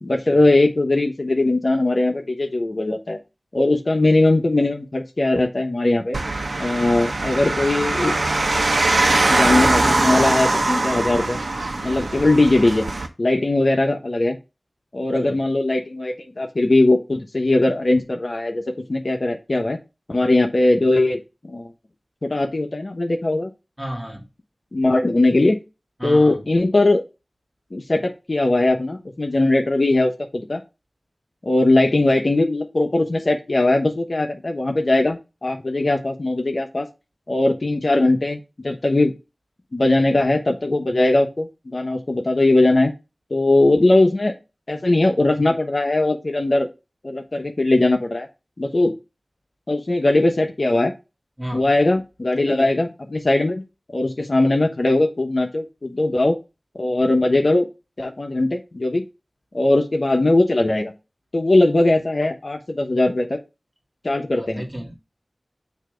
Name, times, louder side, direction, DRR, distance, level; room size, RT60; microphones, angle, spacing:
voice 1, 0.0-3.2 3.5-6.2 6.6-8.1 9.3-11.4 11.8-12.8 13.2-14.4 14.9-18.6 18.9-19.8 20.1-21.2 21.4-21.7 22.2-23.5 24.7-25.6 26.0-27.0 27.7-30.6 31.4-36.9 37.3-39.1 39.7-42.9 43.3-44.3 44.7-46.7 47.0-48.3 48.6-48.9 49.7-50.9 51.5-53.6 53.9-56.4 56.8-57.7 58.0-59.0 59.5-60.9 61.3-63.4 64.0-64.6, left 2 dB, 55° left, 3 dB, 1.0 m, -19 dB
sound 1, 6.1-13.1, right 2 dB, 80° right, 1.0 m, -21 dB
voice 2, 23.8-24.2 26.0-26.4 51.4-51.7 64.3-65.0, equal, 15° right, 2 dB, 1.9 m, -32 dB
7.3 x 2.9 x 5.1 m, 0.27 s
wide cardioid pair, 50°, 0 cm